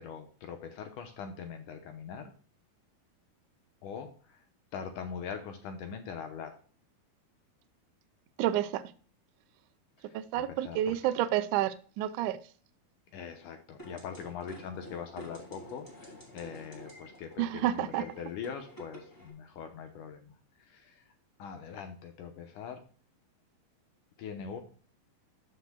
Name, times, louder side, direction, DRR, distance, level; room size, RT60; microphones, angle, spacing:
voice 1, 0.0-2.3 3.8-4.4 4.7-6.5 10.1-10.2 10.6-11.0 13.1-21.0 21.4-22.8 24.2-24.6, left 7 dB, 70° left, 6 dB, 2.1 m, -42 dB
voice 2, 8.4-8.8 10.1-12.4 17.4-18.0, right 12 dB, 85° right, 10 dB, 1.7 m, -29 dB
sound 1, 13.8-19.3, equal, 5° left, 3.0 m, -50 dB
13.5 x 5.8 x 2.2 m, 0.41 s
omnidirectional pair, 4.3 m